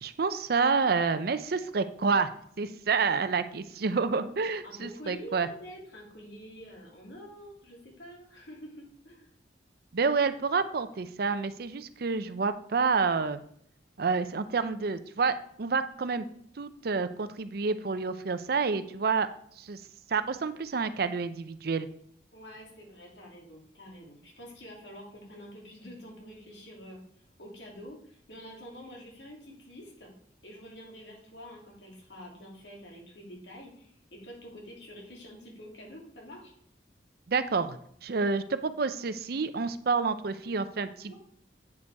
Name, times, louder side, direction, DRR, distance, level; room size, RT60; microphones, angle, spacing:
voice 1, 0.0-2.3 2.6-5.5 9.9-13.4 14.0-16.2 16.6-19.3 19.6-19.8 20.1-21.9 37.3-41.1, right 4 dB, 60° right, 12 dB, 0.5 m, -29 dB
voice 2, 4.6-9.3 22.3-27.0 27.4-30.1 30.4-36.5 38.2-38.4 41.1-41.2, equal, 80° left, -1 dB, 2.7 m, -47 dB
8.3 x 5.2 x 4.7 m, 0.64 s
head